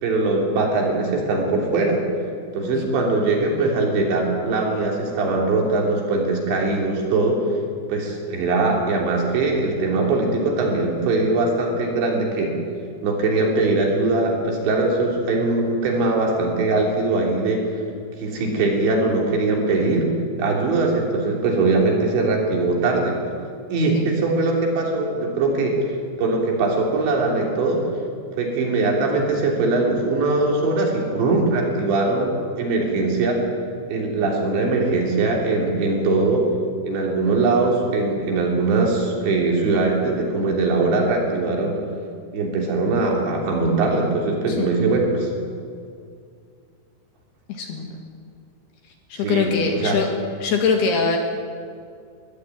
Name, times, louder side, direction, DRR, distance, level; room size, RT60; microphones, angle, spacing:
voice 1, 0.0-2.0 2.5-7.4 7.9-12.6 13.0-17.8 18.2-20.1 20.4-23.2 23.7-25.9 26.2-27.8 28.4-33.4 33.9-36.5 36.8-41.8 42.3-45.3 49.2-50.0, right 3 dB, 65° right, 0 dB, 5.3 m, -21 dB
voice 2, 47.5-47.9 49.1-50.1 50.4-51.2, left 5 dB, 65° left, 3 dB, 3.3 m, -23 dB
22.5 x 15.0 x 9.7 m, 2.3 s
omnidirectional pair, 5.8 m